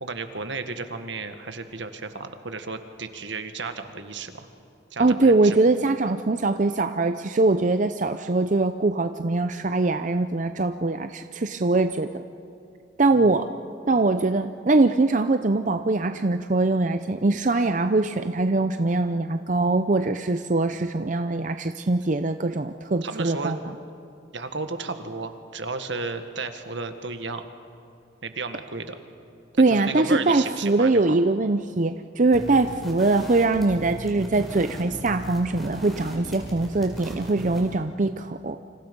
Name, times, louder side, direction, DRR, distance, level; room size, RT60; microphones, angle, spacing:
voice 1, 0.0-4.5 4.9-5.6 13.1-13.4 23.0-23.6 24.3-27.4 28.2-29.0 29.5-31.2, right 3 dB, 75° right, 8 dB, 1.7 m, -33 dB
voice 2, 5.0-12.2 13.0-13.5 13.8-23.6 29.6-38.6, right 2 dB, 40° right, 8 dB, 0.6 m, -22 dB
sound 1, 32.3-37.8, equal, ahead, 4.8 m, -37 dB
29.0 x 26.5 x 5.4 m, 2.7 s
head